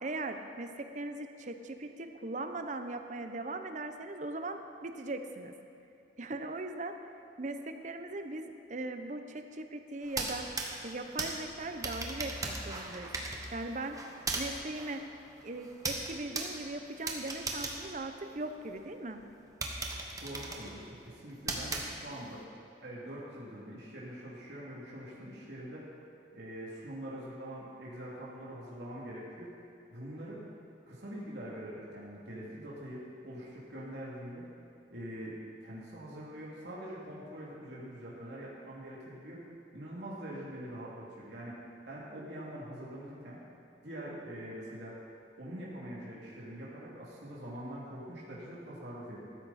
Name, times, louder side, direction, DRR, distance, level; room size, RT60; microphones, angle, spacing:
voice 1, 0.0-5.5 6.2-6.9 7.4-10.5 10.8-13.1 13.5-14.0 14.4-15.0 15.4-19.2, right 2 dB, 45° right, 7 dB, 0.8 m, -39 dB
sound 1, 10.0-18.8 19.2-19.3 19.6-22.4, right 3 dB, 20° right, 1.2 m, -39 dB
voice 2, 20.2-22.4 22.8-25.8 26.3-29.5 29.9-30.4 30.9-34.4 34.9-39.4 39.7-41.6 41.9-43.4 43.8-45.0 45.4-49.3, right 1 dB, 75° right, -6 dB, 2.8 m, -44 dB
15.0 x 13.0 x 4.2 m, 2.7 s
head